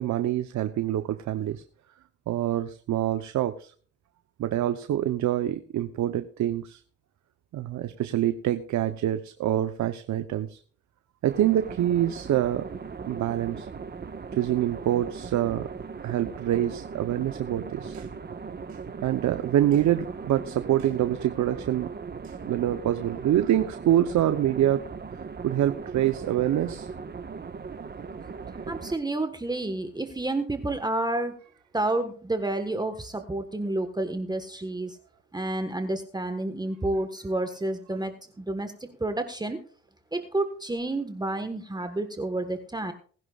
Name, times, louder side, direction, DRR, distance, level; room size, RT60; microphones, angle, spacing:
voice 1, 0.0-1.6 2.3-3.7 4.4-6.8 7.5-10.6 11.2-12.7 13.1-13.7 14.4-15.7 16.0-18.1 19.0-21.9 22.2-24.8 25.4-26.9, right 12 dB, 70° right, 10 dB, 0.9 m, -26 dB
sound 1, 11.3-28.9, right 5 dB, 35° right, 1.4 m, -38 dB
voice 2, 28.7-31.3 31.7-35.0 35.3-39.6 40.1-42.9, right 2 dB, 15° right, 7 dB, 1.5 m, -30 dB
20.0 x 10.5 x 2.5 m, 0.43 s
cardioid pair, 90°, 30 cm